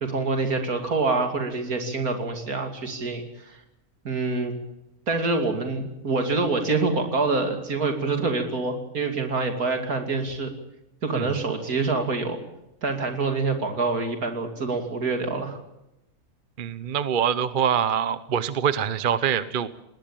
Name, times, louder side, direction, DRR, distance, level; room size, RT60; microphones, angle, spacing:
voice 1, 0.0-3.6 4.0-4.5 5.1-10.5 11.0-12.4 12.8-15.6, right 3 dB, 75° right, 5 dB, 3.1 m, -26 dB
voice 2, 16.6-19.7, right 8 dB, 40° right, 15 dB, 0.9 m, -24 dB
19.5 x 18.5 x 8.9 m, 0.87 s
omnidirectional pair, 1.6 m